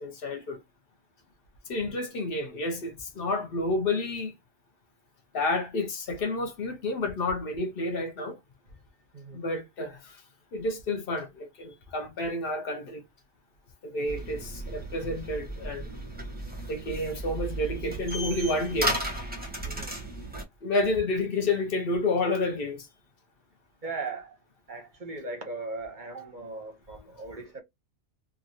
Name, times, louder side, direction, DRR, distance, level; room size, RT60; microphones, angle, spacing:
voice 1, 0.0-0.6 1.7-4.3 5.3-8.4 9.3-10.2 10.5-13.0 13.8-15.9 16.7-19.0 20.6-22.9, left 2 dB, 55° left, 0.7 m, -30 dB
sound 1, 14.1-20.4, right 1 dB, 10° right, 0.8 m, -34 dB
voice 2, 19.6-20.0 23.8-24.4 24.7-27.6, right 3 dB, 45° right, 0.8 m, -38 dB
3.0 x 2.5 x 2.5 m
omnidirectional pair, 1.3 m